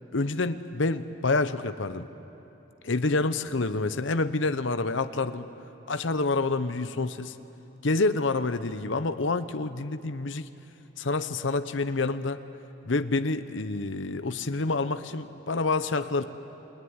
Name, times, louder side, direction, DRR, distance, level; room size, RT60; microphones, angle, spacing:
voice 1, 0.1-2.1 2.8-5.5 5.9-7.3 7.8-10.5 11.0-12.4 12.8-16.2, left 3 dB, 75° left, 11 dB, 0.9 m, -27 dB
28.5 x 21.0 x 9.8 m, 3.0 s
head